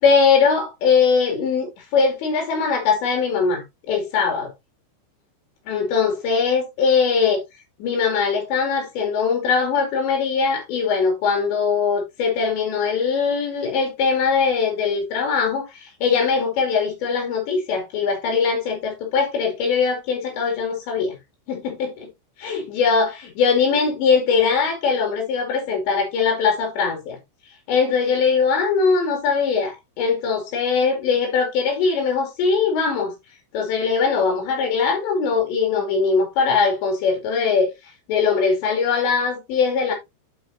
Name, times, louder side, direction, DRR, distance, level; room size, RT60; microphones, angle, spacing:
voice 1, 0.0-4.5 5.7-7.4 7.8-21.2 21.5-22.1 22.4-27.2 27.7-33.1 33.5-37.7 38.1-39.9, left 5 dB, 65° left, 4.7 m, -21 dB
12.5 x 4.9 x 2.7 m
omnidirectional pair, 5.5 m